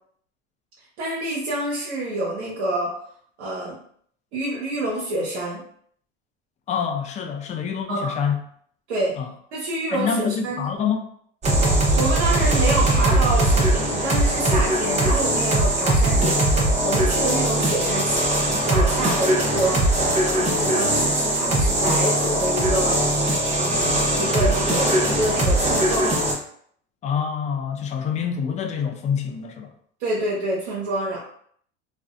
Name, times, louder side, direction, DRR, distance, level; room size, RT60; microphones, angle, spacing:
voice 1, 1.0-2.9 3.4-3.8 4.3-5.6 7.9-8.2 8.9-9.1 9.5-10.7 11.9-19.8 20.2-23.0 23.5-26.2 30.0-31.2, right 1 dB, 75° right, -6 dB, 0.8 m, -27 dB
voice 2, 6.7-8.4 9.2-9.3 9.9-11.0 27.0-29.7, left 7 dB, 20° left, 4 dB, 0.3 m, -26 dB
sound 1, 11.4-26.3, right 1 dB, 20° right, 0.6 m, -20 dB
2.5 x 2.0 x 2.4 m, 0.63 s
hypercardioid pair, 85°, 34 cm